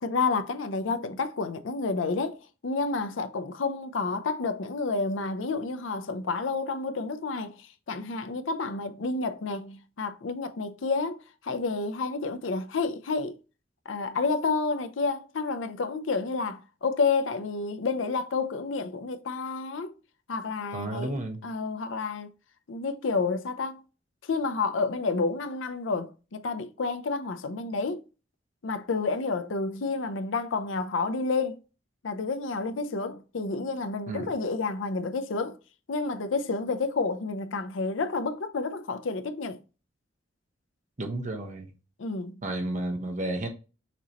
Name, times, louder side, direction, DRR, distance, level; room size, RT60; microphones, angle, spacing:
voice 1, 0.0-13.4 13.9-20.0 20.3-21.1 21.4-22.3 22.7-23.8 24.2-28.0 28.6-31.6 32.0-35.6 35.9-39.6 42.0-42.4, left 4 dB, 90° left, 0.6 m, -30 dB
voice 2, 20.7-21.4 34.1-34.3 41.0-41.7 42.4-43.5, right 1 dB, 40° right, 1.1 m, -32 dB
6.0 x 2.9 x 2.9 m
head